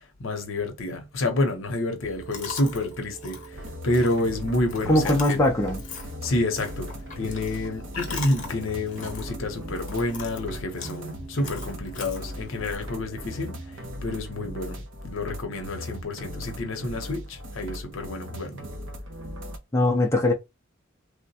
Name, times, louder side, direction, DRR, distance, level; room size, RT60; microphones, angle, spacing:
voice 1, 0.2-5.4 6.2-6.9 7.2-13.6 14.0-18.6, left 2 dB, 70° left, 0.8 m, -29 dB
sound 1, 2.0-13.8, right 2 dB, 20° right, 0.9 m, -45 dB
Chewing mastication, 2.3-12.8, left 5 dB, 40° left, 0.8 m, -42 dB
sound 2, 3.5-19.6, equal, 60° right, 0.7 m, -39 dB
voice 2, 4.9-5.8 19.7-20.3, left 1 dB, 15° left, 0.5 m, -21 dB
3.3 x 2.1 x 2.7 m
head